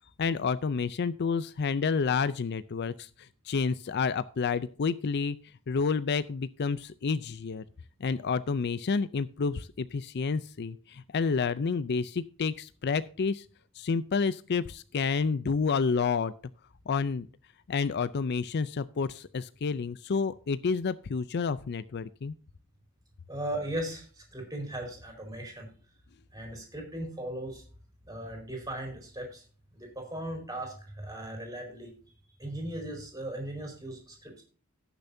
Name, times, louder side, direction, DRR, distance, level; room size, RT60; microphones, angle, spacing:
voice 1, 0.2-5.4 5.7-7.6 8.0-13.5 13.7-16.3 16.9-17.3 17.7-22.3, left 5 dB, 50° left, 15 dB, 0.4 m, -29 dB
voice 2, 23.3-25.7 26.3-27.7 28.1-29.4 29.7-31.9 32.4-34.4, right 1 dB, 15° right, 2 dB, 4.3 m, -38 dB
17.5 x 7.0 x 2.7 m, 0.40 s
head